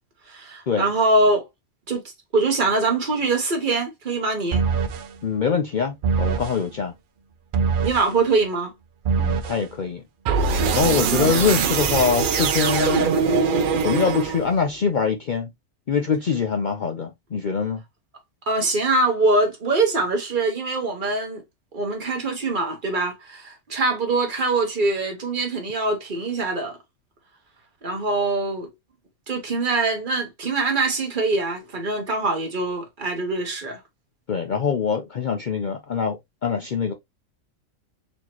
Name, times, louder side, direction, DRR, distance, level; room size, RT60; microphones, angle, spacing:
voice 1, 0.3-1.4 1.9-2.0 2.3-4.6 7.8-8.7 18.5-21.4 21.7-26.8 27.8-28.7 29.3-33.8, right 3 dB, 40° right, 1.2 m, -23 dB
sound 1, 4.5-5.1 6.0-6.6 7.5-8.1 9.0-9.6 10.2-14.6, right 5 dB, 70° right, 0.5 m, -22 dB
voice 2, 5.2-6.9 9.2-10.0 10.7-13.1 13.8-15.5 15.9-17.8 34.3-36.9, left 6 dB, 60° left, 0.5 m, -24 dB
4.2 x 2.9 x 2.9 m
omnidirectional pair, 1.4 m